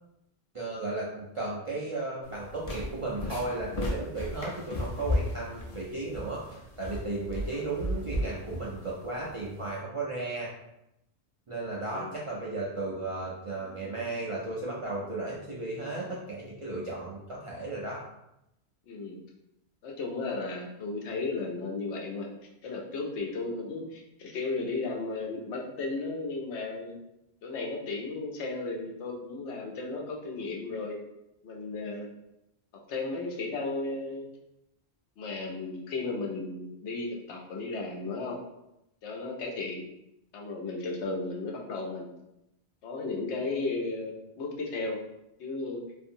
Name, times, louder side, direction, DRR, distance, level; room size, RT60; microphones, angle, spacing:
voice 1, 0.5-10.5 11.5-18.0, right 2 dB, 55° right, -6 dB, 0.3 m, -35 dB
sound 1, 2.2-9.7, left 1 dB, 50° left, 0.5 m, -35 dB
voice 2, 11.9-12.3 18.9-19.2 19.8-22.3 22.6-27.0 27.4-31.0 31.4-32.1 32.9-34.3 35.2-38.4 39.0-39.9 40.3-42.1 42.8-45.0 45.4-45.8, left 3 dB, 85° left, 0 dB, 0.9 m, -34 dB
2.7 x 2.5 x 2.5 m, 0.84 s
omnidirectional pair, 1.1 m